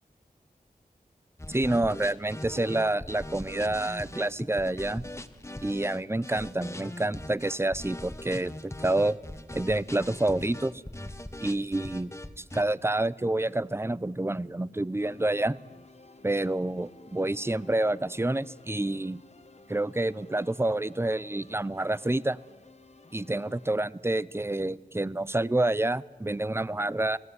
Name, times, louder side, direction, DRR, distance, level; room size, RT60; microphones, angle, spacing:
sound 1, 1.4-12.6, left 1 dB, 15° left, 1.6 m, -40 dB
voice 1, 1.5-5.0 5.6-9.2 9.5-10.8 11.4-12.1 12.4-15.6 16.2-19.2 19.7-22.4 23.1-27.2, right 2 dB, 15° right, 19 dB, 0.8 m, -28 dB
sound 2, 15.0-23.8, left 2 dB, 45° left, 1.6 m, -54 dB
29.0 x 19.0 x 9.7 m, 1.3 s
wide cardioid pair, 55°, 16 cm